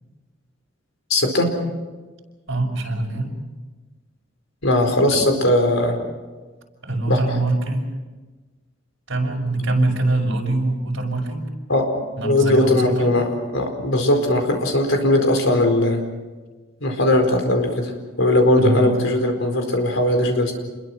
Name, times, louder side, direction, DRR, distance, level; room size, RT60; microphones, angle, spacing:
voice 1, 1.1-1.5 4.6-6.0 7.1-7.2 11.7-11.9 12.2-16.0 16.8-17.9 18.2-20.5, left 1 dB, 70° left, 4 dB, 4.6 m, -19 dB
voice 2, 2.5-3.3 5.1-5.3 6.8-7.9 9.1-11.4 12.2-13.1 18.6-18.9, right 2 dB, 60° right, 0 dB, 5.8 m, -23 dB
28.0 x 22.0 x 6.2 m, 1.3 s
head